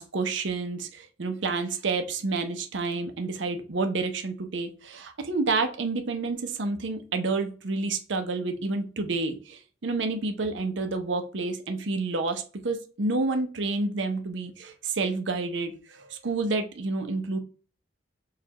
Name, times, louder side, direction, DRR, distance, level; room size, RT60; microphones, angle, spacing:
voice 1, 0.0-17.4, right 3 dB, 80° right, 7 dB, 0.7 m, -29 dB
6.5 x 2.3 x 2.9 m, 0.37 s
head